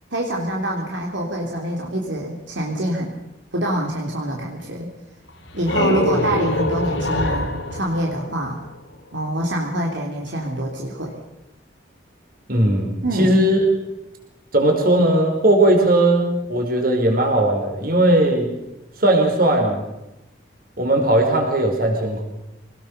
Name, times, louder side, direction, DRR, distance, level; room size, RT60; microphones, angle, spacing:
voice 1, 0.1-3.1 3.5-4.9 5.5-8.6 9.1-11.2 13.0-13.4, right 1 dB, 75° right, -1 dB, 3.4 m, -25 dB
sound 1, 5.3-9.0, left 1 dB, 75° left, 2.7 m, -25 dB
voice 2, 12.5-13.6 14.5-18.5 19.0-19.8 20.8-22.2, right 1 dB, 50° right, 2 dB, 5.2 m, -18 dB
26.0 x 19.5 x 6.8 m, 0.95 s
head